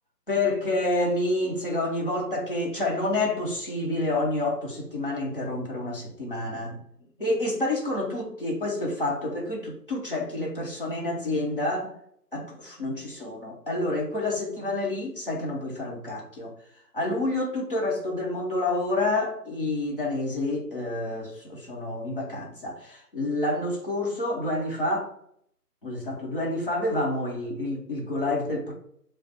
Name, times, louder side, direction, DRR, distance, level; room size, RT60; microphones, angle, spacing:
voice 1, 0.3-6.8 7.2-11.9 12.3-16.5 16.9-25.1 25.8-28.7, left 2 dB, 35° left, -2 dB, 1.0 m, -28 dB
6.3 x 2.2 x 3.0 m, 0.66 s
figure-of-eight pair, 155°, 49 cm